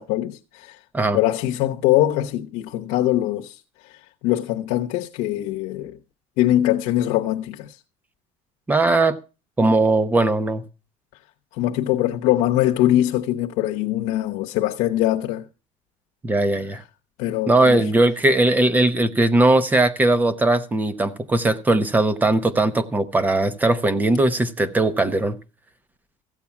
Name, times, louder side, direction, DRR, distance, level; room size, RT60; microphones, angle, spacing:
voice 1, 0.0-0.8 1.1-3.6 3.9-6.0 6.4-7.7 11.5-15.5 17.2-17.8, left 14 dB, 85° left, 0.9 m, -22 dB
voice 2, 8.7-9.2 9.6-10.6 16.2-16.8 17.5-25.4, right 2 dB, 10° right, 0.8 m, -19 dB
15.0 x 8.4 x 5.7 m
cardioid pair, 160°, 14 cm